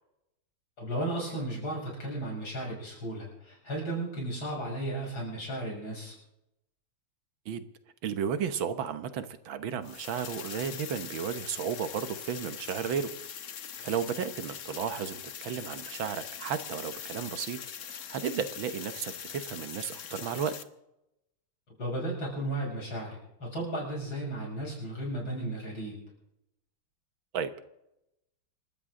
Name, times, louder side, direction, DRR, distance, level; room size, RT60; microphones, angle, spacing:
voice 1, 0.8-6.2 21.8-26.0, right 1 dB, 70° left, -2 dB, 7.6 m, -34 dB
voice 2, 8.0-13.1 13.8-17.6 17.8-20.5 27.3-27.6, right 7 dB, 75° right, 11 dB, 1.8 m, -33 dB
sound 1, 9.8-20.6, left 8 dB, 50° left, 0.9 m, -42 dB
28.0 x 13.0 x 3.8 m, 0.85 s
omnidirectional pair, 2.2 m